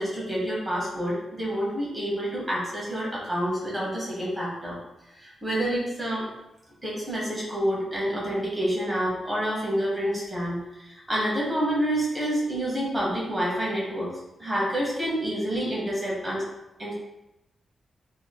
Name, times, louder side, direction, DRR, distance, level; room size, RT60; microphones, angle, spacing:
voice 1, 0.0-4.8 5.1-6.3 6.8-16.4 16.8-16.9, equal, 10° right, -5 dB, 1.0 m, -28 dB
3.1 x 2.8 x 2.2 m, 0.90 s
wide cardioid pair, 170°, 0 cm